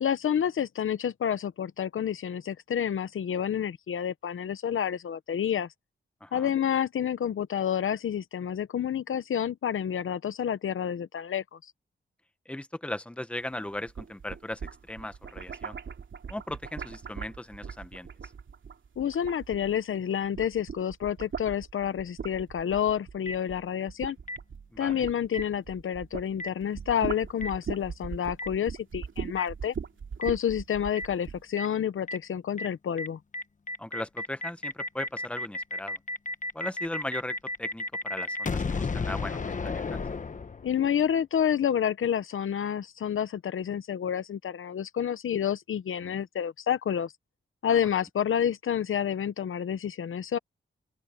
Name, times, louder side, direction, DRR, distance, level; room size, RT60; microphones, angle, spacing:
voice 1, 0.0-5.7 6.3-11.6 19.0-24.2 24.8-29.7 30.2-33.2 40.6-47.1 47.6-50.4, left 9 dB, 85° left, 0.8 m, -29 dB
voice 2, 12.5-14.6 14.9-15.8 16.3-18.1 24.7-25.1 33.8-36.0 36.5-40.0 46.0-46.1, left 1 dB, 5° left, 1.0 m, -38 dB
sound 1, 13.7-20.0 20.3-26.3 26.6-31.4, right 6 dB, 75° right, 2.6 m, -39 dB
Boom, 23.3-23.4 24.3-24.4 25.3-25.4 26.4-26.5 27.4-27.5 28.4-28.5 29.4-29.5 30.2-30.3 31.0-31.1 31.6-31.7 32.1-32.2 32.6-32.7 33.0-33.1 33.3-40.9, left 3 dB, 40° left, 1.1 m, -33 dB
open air
wide cardioid pair, 130°, 20 cm